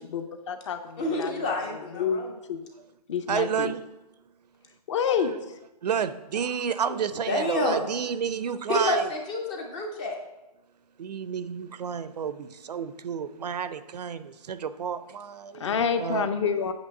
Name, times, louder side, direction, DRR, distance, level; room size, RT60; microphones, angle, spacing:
voice 1, 0.1-2.6 3.1-3.7 4.9-5.3 15.5-16.7, left 6 dB, 45° left, 9 dB, 0.7 m, -28 dB
voice 2, 1.0-2.3 6.9-7.0 7.3-7.9 8.7-10.2, left 2 dB, 10° left, 2 dB, 0.3 m, -28 dB
voice 3, 3.3-3.8 5.2-5.3 5.8-9.1 11.0-16.3, right 7 dB, 80° right, 13 dB, 0.6 m, -30 dB
8.2 x 3.1 x 6.4 m, 0.97 s
hypercardioid pair, 165°, 20 cm